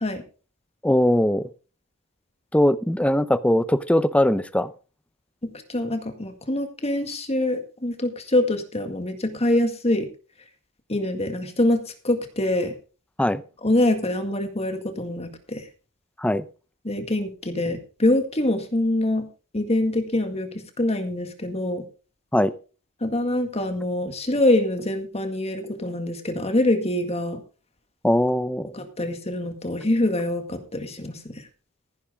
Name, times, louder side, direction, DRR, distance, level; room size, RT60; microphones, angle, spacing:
voice 1, 0.8-1.5 2.5-4.7 13.2-13.4 16.2-16.4 22.3-22.5 28.0-28.7, left 1 dB, 5° left, 14 dB, 0.7 m, -20 dB
voice 2, 5.7-10.1 10.9-12.7 13.6-15.6 16.8-19.3 19.5-21.8 23.0-27.4 28.7-31.4, left 1 dB, 30° left, 7 dB, 1.9 m, -24 dB
15.0 x 10.5 x 3.6 m, 0.35 s
head